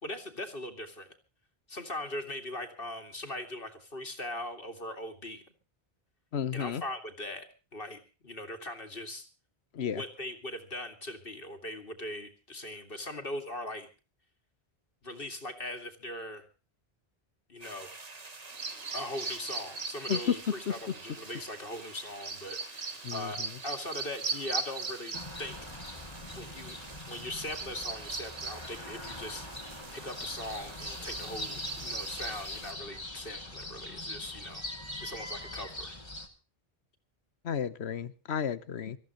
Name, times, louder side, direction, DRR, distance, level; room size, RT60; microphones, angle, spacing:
voice 1, 0.0-1.1 1.7-5.4 6.5-7.5 7.7-9.3 9.9-13.9 15.0-16.4 17.5-17.9 18.9-23.4 23.6-25.6 26.3-26.8 27.1-29.5 29.9-34.6 35.0-36.0, left 1 dB, 60° left, 2.5 m, -40 dB
voice 2, 6.3-6.8 9.7-10.0 20.1-20.4 20.7-20.8 23.0-23.3 37.4-39.0, left 8 dB, 85° left, 1.2 m, -32 dB
sound 1, 17.6-32.7, right 3 dB, 40° right, 1.5 m, -50 dB
Bird vocalization bird call bird song, 18.5-32.4, right 4 dB, 75° right, 1.8 m, -41 dB
sound 2, 25.1-36.3, left 2 dB, 25° left, 2.3 m, -42 dB
26.0 x 14.0 x 3.0 m
omnidirectional pair, 1.1 m